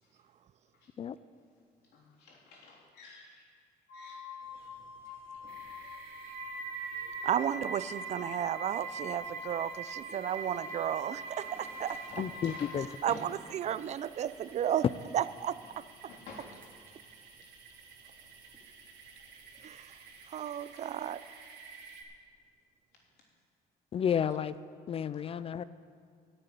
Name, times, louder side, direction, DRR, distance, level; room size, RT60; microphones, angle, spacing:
voice 1, 1.9-3.5 3.9-4.2 4.5-4.7 5.1-5.4 12.1-12.7 13.1-13.2 16.1-16.5, left 4 dB, 75° left, -3 dB, 3.4 m, -51 dB
Wind instrument woodwind instrument, 3.9-12.9, left 3 dB, 55° left, 3.1 m, -47 dB
sound 1, 4.4-20.2, right 1 dB, 15° right, 2.9 m, -61 dB
sound 2, 5.5-22.0, right 5 dB, 85° right, 1.9 m, -45 dB
voice 2, 7.2-12.0 13.0-14.8 15.1-15.8 19.6-19.9 20.3-21.2, right 10 dB, 40° right, 16 dB, 0.4 m, -33 dB
voice 3, 12.2-12.9 23.9-24.6 24.9-25.6, left 8 dB, 35° left, 16 dB, 0.3 m, -31 dB
11.0 x 6.8 x 9.3 m, 2.2 s
cardioid pair, 110°, 17 cm